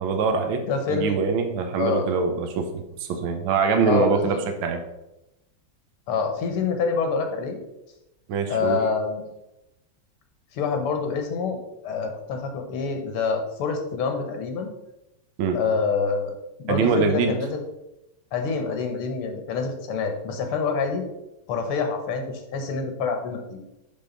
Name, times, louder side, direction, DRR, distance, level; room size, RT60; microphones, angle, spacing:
voice 1, 0.0-4.8 8.3-8.8 15.4-15.6 16.7-17.4, right 5 dB, 70° right, 6 dB, 1.6 m, -24 dB
voice 2, 0.7-1.2 1.8-2.0 3.8-4.4 6.1-7.6 8.5-9.2 10.5-11.6 11.8-14.7 15.5-17.6 18.3-21.0 21.5-23.6, left 5 dB, 90° left, 5 dB, 1.9 m, -26 dB
10.5 x 3.8 x 3.9 m, 0.92 s
omnidirectional pair, 2.4 m